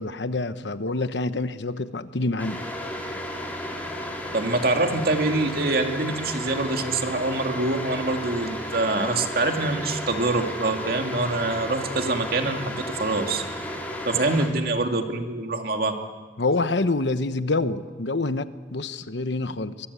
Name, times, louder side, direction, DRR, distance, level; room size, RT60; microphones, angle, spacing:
voice 1, 0.0-2.6 14.3-14.4 16.4-19.9, left 2 dB, 75° left, 11 dB, 1.1 m, -27 dB
sound 1, 2.4-14.5, left 1 dB, 10° left, 4.0 m, -33 dB
voice 2, 4.3-13.4 14.1-16.0, right 2 dB, 55° right, 4 dB, 2.2 m, -25 dB
24.0 x 22.5 x 8.4 m, 1.5 s
head